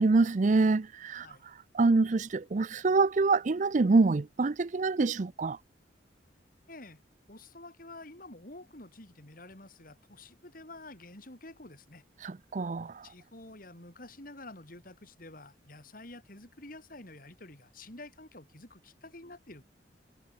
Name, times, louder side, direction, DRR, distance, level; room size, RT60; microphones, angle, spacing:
voice 1, 0.0-1.3 1.7-5.6 12.2-13.1, right 3 dB, 45° right, 0.5 m, -26 dB
voice 2, 6.7-7.0 7.3-12.0 13.0-19.6, left 2 dB, 50° left, 4.2 m, -49 dB
head